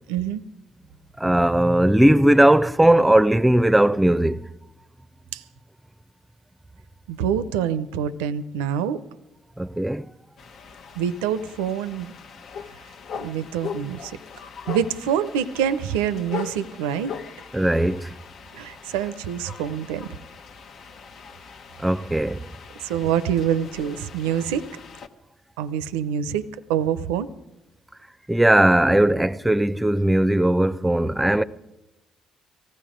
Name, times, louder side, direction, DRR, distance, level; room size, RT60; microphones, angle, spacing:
voice 1, 0.1-0.4 5.3-5.4 7.1-9.0 11.0-12.1 13.2-14.2 14.7-17.1 18.5-20.2 22.8-24.7 25.6-27.3, right 9 dB, 85° right, 0.6 m, -26 dB
voice 2, 1.2-4.5 9.6-10.1 17.5-18.1 21.8-22.4 28.3-31.4, right 1 dB, 10° right, 0.6 m, -18 dB
sound 1, 10.4-25.1, left 6 dB, 65° left, 1.0 m, -40 dB
18.5 x 15.0 x 5.0 m
hypercardioid pair, 55°, 0 cm